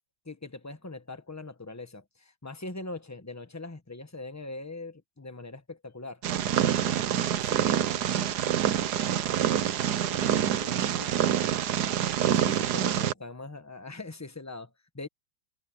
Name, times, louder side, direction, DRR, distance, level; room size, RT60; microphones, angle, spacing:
voice 1, 0.2-6.2 12.3-15.1, left 2 dB, 15° left, 0.7 m, -41 dB
Purr, 6.2-13.1, right 10 dB, 60° right, 1.2 m, -26 dB
voice 2, 7.5-8.3 8.7-9.7 10.0-11.4, left 3 dB, 85° left, 4.9 m, -48 dB
omnidirectional pair, 2.3 m